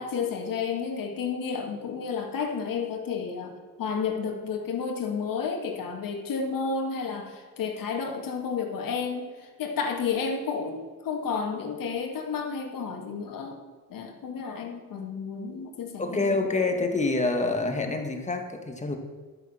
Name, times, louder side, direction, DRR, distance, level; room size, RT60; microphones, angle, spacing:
voice 1, 0.0-13.6 13.9-16.5, left 5 dB, 65° left, 2 dB, 2.2 m, -31 dB
voice 2, 16.0-19.0, left 3 dB, 20° left, 4 dB, 1.7 m, -27 dB
12.0 x 8.0 x 5.8 m, 1.5 s
cardioid pair, 105°, 36 cm